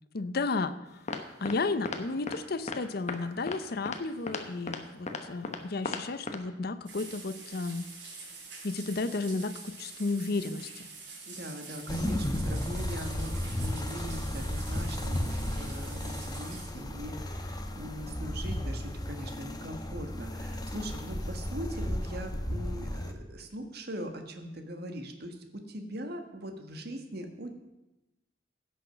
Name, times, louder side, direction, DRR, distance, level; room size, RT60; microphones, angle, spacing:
voice 1, 0.1-0.8 1.4-7.9 8.6-10.9, left 3 dB, 60° left, 12 dB, 0.7 m, -33 dB
sound 1, 1.1-1.6 1.9-2.0 2.3-2.4 2.7-2.8 3.1-3.2 3.5-3.6 3.9-4.0 4.3-4.4 4.7-4.8 5.1-5.6 5.9-6.0 6.3-6.4, left 3 dB, 40° left, 1.1 m, -34 dB
sound 2, 6.9-16.7, right 4 dB, 85° right, 2.9 m, -46 dB
voice 2, 11.3-27.5, equal, 60° right, 5 dB, 1.5 m, -41 dB
sound 3, 11.9-23.1, left 1 dB, 25° left, 0.9 m, -34 dB
16.0 x 6.4 x 5.8 m, 0.98 s
head